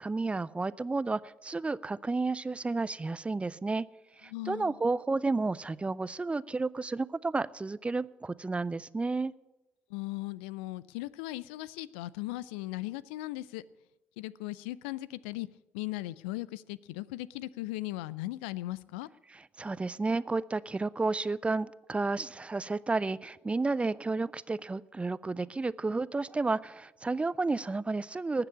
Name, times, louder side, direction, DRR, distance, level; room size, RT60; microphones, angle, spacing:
voice 1, 0.0-3.8 4.2-9.3 19.3-28.5, right 3 dB, 20° right, 0.5 m, -31 dB
voice 2, 4.3-4.7 9.9-13.6 14.2-15.5 15.7-19.1, left 18 dB, 75° left, 0.4 m, -38 dB
19.0 x 6.8 x 8.5 m
hypercardioid pair, 50°, 6 cm